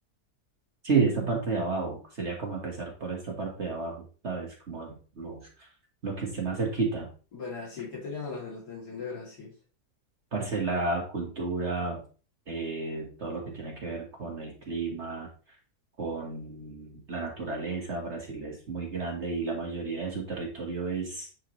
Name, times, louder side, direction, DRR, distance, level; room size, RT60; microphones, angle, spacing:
voice 1, 0.8-5.7 6.0-7.1 10.3-12.0 12.5-15.3 16.0-21.3, right 4 dB, 45° right, -1 dB, 1.7 m, -32 dB
voice 2, 7.3-9.5, left 4 dB, 85° left, -4 dB, 3.2 m, -38 dB
10.0 x 4.8 x 3.1 m, 0.37 s
omnidirectional pair, 1.7 m